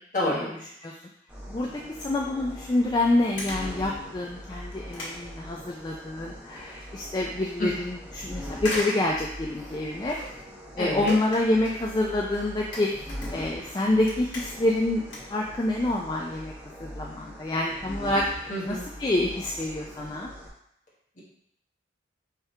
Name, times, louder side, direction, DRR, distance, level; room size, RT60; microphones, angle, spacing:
voice 1, 0.1-0.5 7.6-7.7 10.8-11.1 18.5-18.8, left 1 dB, 40° left, -6 dB, 1.4 m, -28 dB
sound 1, 1.3-20.5, equal, 5° right, 0.8 m, -42 dB
voice 2, 2.0-10.2 10.8-12.9 13.3-15.0 15.3-16.5 16.8-20.3, left 1 dB, 20° left, -1 dB, 0.3 m, -27 dB
sound 2, 2.8-2.9 3.4-3.8 4.2-4.3 4.7-6.1 6.4-6.9 7.3-7.4 8.6-10.5 11.1-13.7 13.9-14.8 15.0-16.0 16.3-16.5 17.2-17.3 17.6-17.7 17.9-18.0 18.3-18.5 18.9-19.1 19.3-19.4, left 1 dB, 75° left, 1.4 m, -39 dB
4.5 x 3.5 x 3.3 m, 0.73 s
head